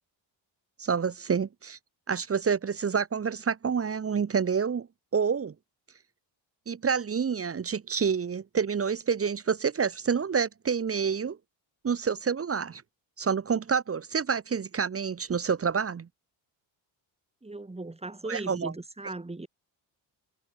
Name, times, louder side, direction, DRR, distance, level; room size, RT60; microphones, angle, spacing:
voice 1, 0.8-1.8 2.1-4.9 5.1-5.5 6.7-11.4 11.8-12.8 13.2-16.1 18.2-18.7, right 6 dB, 30° right, 0.8 m, -28 dB
voice 2, 17.4-19.5, right 2 dB, 15° right, 2.2 m, -38 dB
cardioid pair, 85°, 47 cm